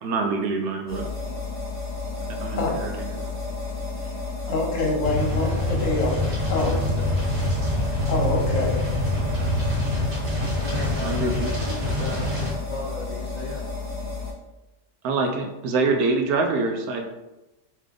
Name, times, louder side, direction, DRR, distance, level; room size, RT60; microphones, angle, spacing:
voice 1, 0.0-1.0 2.4-3.2 11.0-11.5 15.0-17.1, right 3 dB, 80° right, 3 dB, 1.1 m, -25 dB
sound 1, 0.9-14.3, left 3 dB, 10° left, 1.0 m, -32 dB
voice 2, 2.5-2.9 3.2-3.4 6.5-7.1 10.6-12.3 12.6-13.6, left 2 dB, 80° left, -4 dB, 0.4 m, -37 dB
voice 3, 4.5-6.2 6.5-6.7 8.1-8.7, left 3 dB, 65° left, 0 dB, 1.2 m, -25 dB
sound 2, 5.0-12.5, left 1 dB, 65° right, 1.6 m, -25 dB
3.3 x 3.3 x 3.6 m, 0.99 s
omnidirectional pair, 1.6 m